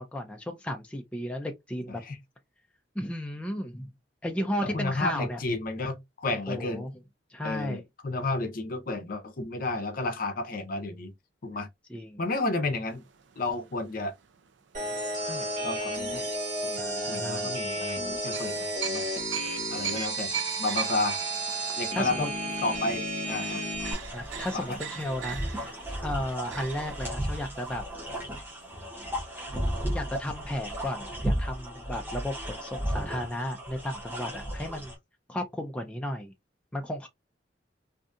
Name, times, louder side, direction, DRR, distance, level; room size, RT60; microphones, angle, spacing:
voice 1, 0.0-2.0 3.0-3.9 4.2-5.4 6.5-6.9 7.3-7.8 11.9-12.2 16.8-17.5 21.9-22.3 24.1-25.7 26.0-27.8 29.9-34.9 35.3-36.3 36.7-37.1, left 1 dB, 5° left, 0.3 m, -34 dB
voice 2, 4.6-6.9 7.4-11.1 11.4-11.7 12.2-13.0 13.4-14.1 15.3-16.3 16.6-19.1 19.7-20.3 20.6-21.2 21.8-22.3 22.6-23.7 24.5-24.8, left 2 dB, 50° left, 0.6 m, -32 dB
sound 1, 12.9-15.4 15.9-16.1 18.3-29.1 29.3-29.4 29.7-29.9, right 8 dB, 75° right, 0.4 m, -41 dB
sound 2, 14.7-23.9, right 1 dB, 45° right, 1.3 m, -32 dB
sound 3, 23.8-35.0, equal, 10° right, 0.8 m, -34 dB
2.6 x 2.3 x 2.5 m
head